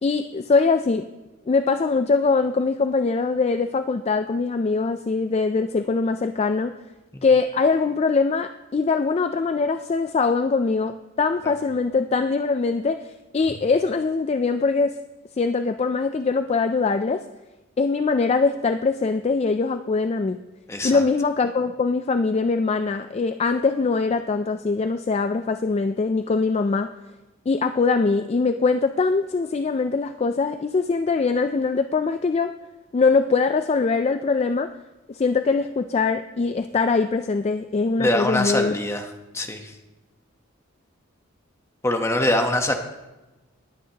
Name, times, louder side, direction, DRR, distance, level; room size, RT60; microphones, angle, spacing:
voice 1, 0.0-1.1 1.5-6.7 7.2-15.0 15.4-17.2 17.8-20.4 20.8-26.9 27.5-32.5 32.9-34.7 35.1-38.7, left 4 dB, 30° left, 9 dB, 0.3 m, -22 dB
voice 2, 20.7-21.0 38.0-39.1 39.3-39.7 41.8-42.7, left 1 dB, 15° left, 4 dB, 1.0 m, -23 dB
19.5 x 9.1 x 2.9 m, 1.1 s
head